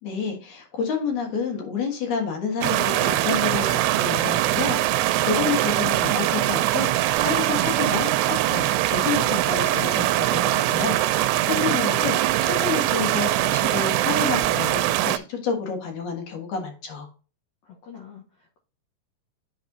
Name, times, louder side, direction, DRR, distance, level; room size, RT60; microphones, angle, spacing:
voice 1, 0.0-11.0 11.5-12.1 12.4-17.1, left 5 dB, 60° left, 3 dB, 2.3 m, -29 dB
Rio y cascada, 2.6-15.2, right 14 dB, 85° right, 2.6 m, -22 dB
Acoustic guitar, 7.2-11.6, right 6 dB, 35° right, 2.5 m, -41 dB
voice 2, 11.4-12.0 17.6-18.6, left 8 dB, 90° left, 0 dB, 1.5 m, -45 dB
11.0 x 4.1 x 2.7 m, 0.37 s
omnidirectional pair, 4.8 m